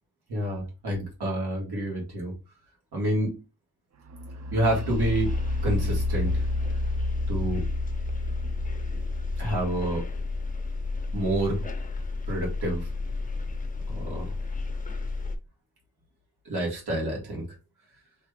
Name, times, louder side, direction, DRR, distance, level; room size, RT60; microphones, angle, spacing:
voice 1, 0.3-2.3 2.9-3.4 4.5-5.3 5.6-6.4 7.3-7.7 9.4-10.0 11.1-11.6 12.3-12.9 13.9-14.3 16.5-17.5, right 1 dB, 85° right, -2 dB, 1.7 m, -28 dB
sound 1, 4.1-11.8, left 2 dB, 45° right, 0.4 m, -32 dB
sound 2, 4.9-15.4, left 3 dB, 25° left, 0.4 m, -32 dB
3.1 x 2.4 x 3.2 m, 0.28 s
wide cardioid pair, 130°, 37 cm